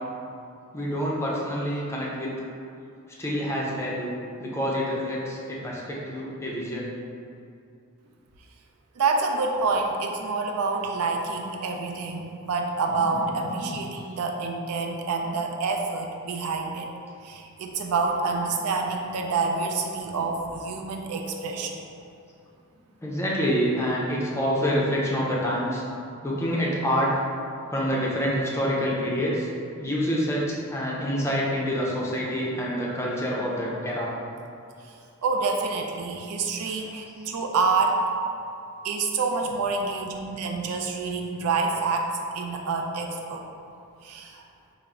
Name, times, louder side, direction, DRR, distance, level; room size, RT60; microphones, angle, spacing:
voice 1, 0.7-2.3 3.2-4.1 4.4-6.9 13.0-13.1 13.4-13.7 23.0-25.8 26.2-27.1 27.7-29.5 29.8-30.4 30.7-34.1 36.6-36.8, equal, 10° left, -4 dB, 0.5 m, -27 dB
voice 2, 9.0-16.9 17.2-21.8 34.8-34.9 35.2-38.0 38.8-43.4 44.0-44.4, right 4 dB, 80° right, 2 dB, 0.4 m, -27 dB
4.3 x 2.0 x 3.6 m, 2.5 s
head